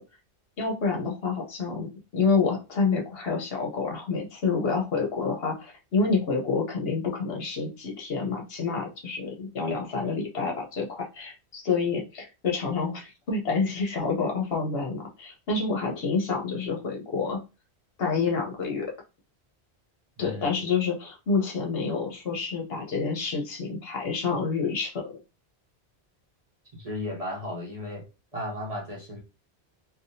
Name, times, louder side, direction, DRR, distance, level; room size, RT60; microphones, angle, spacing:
voice 1, 0.6-17.4 18.0-18.9 20.2-25.1, left 4 dB, 65° left, 0 dB, 1.0 m, -28 dB
voice 2, 20.2-20.6 26.7-28.1 28.3-29.2, left 1 dB, 40° right, -1 dB, 0.8 m, -35 dB
3.4 x 2.3 x 2.6 m, 0.29 s
omnidirectional pair, 1.1 m